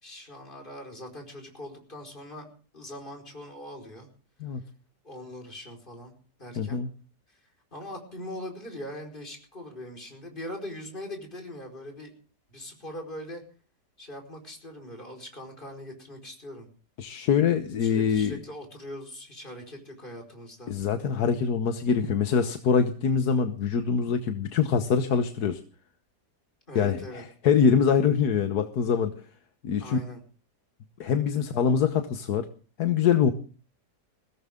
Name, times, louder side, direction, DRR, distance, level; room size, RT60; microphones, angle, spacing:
voice 1, 0.0-2.5 2.7-4.1 5.0-6.1 6.4-6.8 7.3-7.4 7.7-12.1 12.5-13.4 14.0-16.7 17.8-20.7 26.7-27.2 29.8-30.2, left 1 dB, 30° left, 2 dB, 4.9 m, -41 dB
voice 2, 6.6-6.9 17.0-18.4 20.7-25.6 26.7-29.1 29.6-30.0 31.0-32.5 32.8-33.3, left 6 dB, 70° left, 8 dB, 1.5 m, -24 dB
22.0 x 16.5 x 3.6 m, 0.38 s
omnidirectional pair, 1.8 m